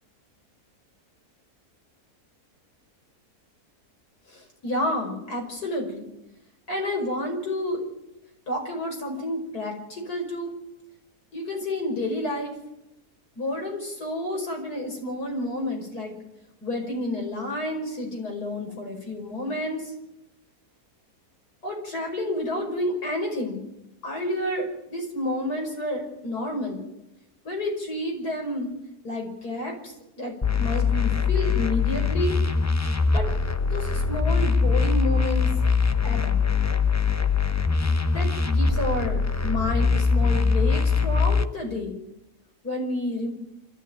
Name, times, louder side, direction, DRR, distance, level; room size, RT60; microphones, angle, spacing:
voice 1, 4.3-6.1 6.7-7.8 8.5-10.5 11.3-12.5 13.4-16.1 16.6-19.9 21.6-23.6 24.0-26.8 27.4-28.7 29.0-32.4 33.1-33.3 33.6-35.5 36.0-36.4 38.1-42.0 42.6-43.3, left 1 dB, 75° left, 1 dB, 6.0 m, -30 dB
sound 1, 30.4-41.4, left 5 dB, 25° left, 0.3 m, -22 dB
26.5 x 14.5 x 9.2 m, 0.91 s
omnidirectional pair, 1.7 m